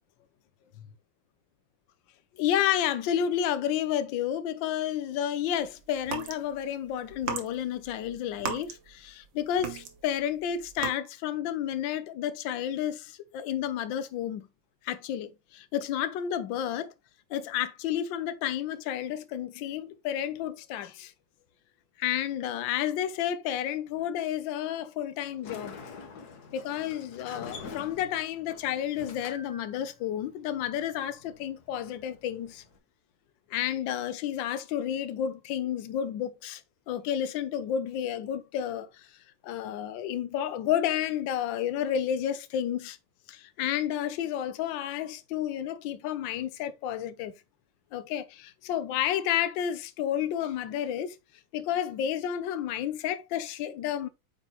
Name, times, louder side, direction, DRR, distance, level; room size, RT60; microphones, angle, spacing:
voice 1, 2.4-14.5 14.8-16.9 17.3-21.1 22.0-25.8 26.5-32.6 33.5-36.6 36.9-39.1 39.4-43.0 43.3-47.3 47.9-51.2 51.5-54.1, left 10 dB, 70° left, 1.4 m, -31 dB
sound 1, 6.0-6.4 7.1-9.2 9.6-10.2 10.7-10.9, right 7 dB, 70° right, 1.7 m, -35 dB
Sliding door, 25.2-32.8, left 5 dB, 55° left, 1.5 m, -47 dB
8.7 x 4.4 x 3.0 m
omnidirectional pair, 2.3 m